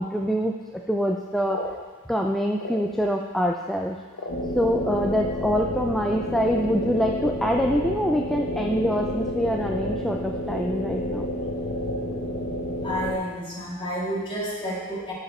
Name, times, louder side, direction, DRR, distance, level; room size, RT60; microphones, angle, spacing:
voice 1, 0.0-1.6 2.1-4.0 4.6-11.3, equal, ahead, 1 dB, 0.3 m, -25 dB
sound 1, 1.1-3.2 3.6-5.1 5.8-5.9 6.2-6.5 6.8-7.2 7.5-7.8 8.4-9.4 9.7-10.6 10.8-10.9 11.3-11.6 12.1-12.5, left 2 dB, 80° left, 1.2 m, -38 dB
sound 2, 4.3-13.1, left 1 dB, 65° left, 1.1 m, -29 dB
voice 2, 12.8-15.1, equal, 25° left, -6 dB, 2.4 m, -30 dB
13.0 x 4.9 x 4.3 m, 1.3 s
head